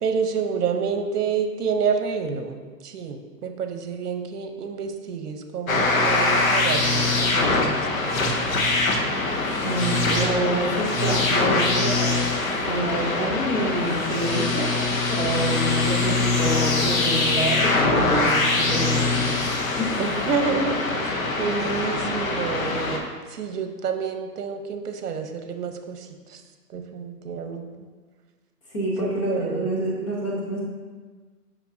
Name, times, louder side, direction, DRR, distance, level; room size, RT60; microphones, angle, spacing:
voice 1, 0.0-2.6 2.8-7.9 20.0-26.4 26.7-27.9 29.0-29.7, right 5 dB, 75° right, 6 dB, 0.9 m, -29 dB
sound 1, 5.7-23.0, left 2 dB, 60° left, 1.0 m, -23 dB
voice 2, 9.6-12.1 12.6-14.7 15.1-19.4 19.8-19.9 28.7-30.6, right 1 dB, 20° left, -5 dB, 0.9 m, -27 dB
7.2 x 5.5 x 2.7 m, 1.4 s
hypercardioid pair, 170°, 47 cm